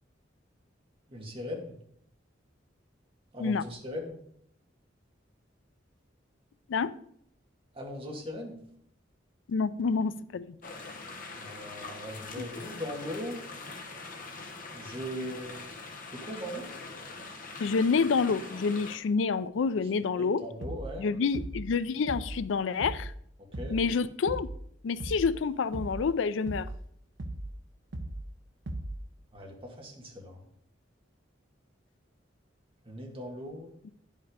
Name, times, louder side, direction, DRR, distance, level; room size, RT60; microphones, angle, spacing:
voice 1, 1.1-1.8 3.3-4.2 7.7-8.6 11.3-13.4 14.7-15.7 16.1-16.7 20.2-21.1 23.4-23.8 29.3-30.4 32.9-33.7, equal, 30° right, 1.9 m, -39 dB
voice 2, 9.5-10.6 17.6-20.4 21.0-23.1 23.7-24.5 24.8-26.7, left 5 dB, 85° left, 0.4 m, -28 dB
sound 1, 10.6-19.0, left 3 dB, 45° left, 1.1 m, -43 dB
sound 2, 20.6-21.0 21.3-21.7 22.1-22.4 22.8-23.2 23.5-23.9 24.3-24.6 25.0-25.4 25.7-26.1 26.5-26.8 27.2-27.6 27.9-28.3 28.7-29.1, right 1 dB, 75° right, 0.7 m, -38 dB
10.0 x 5.5 x 5.0 m
head